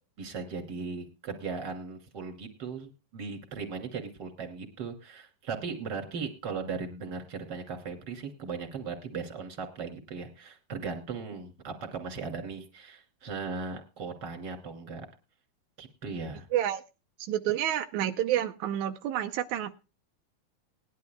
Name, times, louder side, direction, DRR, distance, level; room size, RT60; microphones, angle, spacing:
voice 1, 0.2-15.1 15.8-16.5, right 5 dB, 30° right, 4 dB, 2.6 m, -38 dB
voice 2, 17.2-19.8, right 11 dB, 85° right, 6 dB, 1.6 m, -29 dB
20.0 x 11.5 x 2.2 m, 0.31 s
omnidirectional pair, 4.3 m